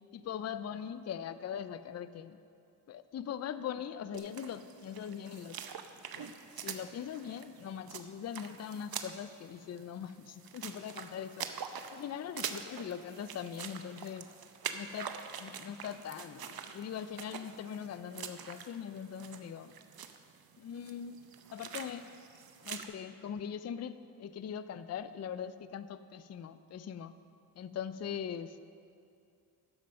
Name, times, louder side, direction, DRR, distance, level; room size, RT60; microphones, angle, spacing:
voice 1, 0.1-2.4 2.9-5.6 6.1-6.2 6.6-11.5 11.9-14.3 14.7-15.1 15.4-19.7 20.6-21.2 21.5-22.0 22.6-27.1 27.6-28.5, left 8 dB, 40° left, 13 dB, 0.5 m, -41 dB
sound 1, 4.1-22.9, right 7 dB, 60° right, 0.8 m, -45 dB
11.5 x 7.3 x 5.2 m, 2.5 s
cardioid pair, 55°, 41 cm